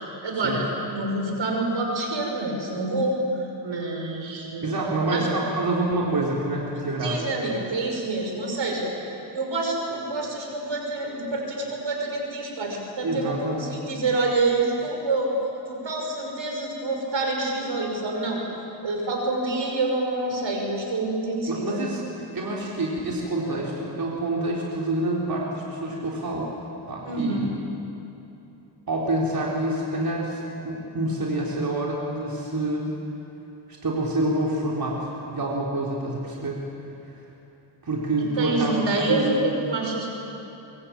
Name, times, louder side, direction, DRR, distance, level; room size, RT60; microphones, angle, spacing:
voice 1, 0.2-3.2 3.6-4.7 5.0-5.3 7.0-8.9 9.3-15.3 15.7-18.4 18.8-21.8 27.1-27.5 38.4-40.1, right 2 dB, 80° right, 1 dB, 5.9 m, -27 dB
voice 2, 4.6-7.2 13.0-13.9 21.5-26.5 26.9-27.5 28.9-32.9 33.8-36.7 37.0-37.2 37.8-39.5, right 2 dB, 50° right, -4 dB, 4.0 m, -27 dB
23.5 x 23.5 x 8.9 m, 3.0 s
wide cardioid pair, 90°, 44 cm